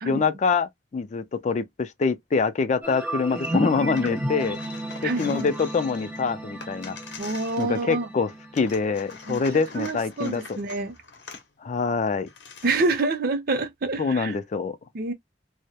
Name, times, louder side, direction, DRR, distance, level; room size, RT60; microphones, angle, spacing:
voice 1, 0.0-4.6 5.0-7.0 7.6-10.6 11.6-12.3 14.0-14.8, left 4 dB, 40° left, 0.3 m, -25 dB
sound 1, 2.8-9.9, right 1 dB, 10° right, 0.6 m, -34 dB
sound 2, 3.3-3.6 3.9-8.1 8.6-11.5 12.0-12.1 12.3-13.0, left 5 dB, 70° left, 0.7 m, -44 dB
voice 2, 5.0-5.5 7.2-8.1 9.2-11.0 12.6-14.4 14.9-15.1, right 3 dB, 55° right, 0.6 m, -27 dB
2.2 x 2.0 x 2.8 m
head